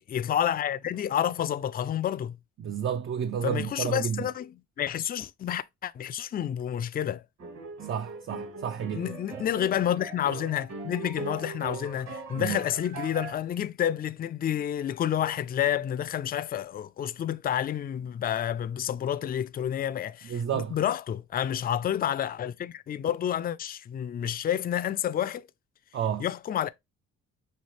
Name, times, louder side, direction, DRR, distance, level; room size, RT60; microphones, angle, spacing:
voice 1, 0.1-2.4 3.4-7.2 8.9-25.5 26.2-26.7, left 10 dB, 30° left, 0.4 m, -29 dB
voice 2, 2.6-4.2 7.9-9.1 12.4-12.6 20.3-20.8 25.9-26.2, right 8 dB, 45° right, 0.4 m, -30 dB
sound 1, 7.4-13.4, right 4 dB, 65° right, 2.0 m, -40 dB
5.7 x 2.8 x 3.1 m
cardioid pair, 90°, 30 cm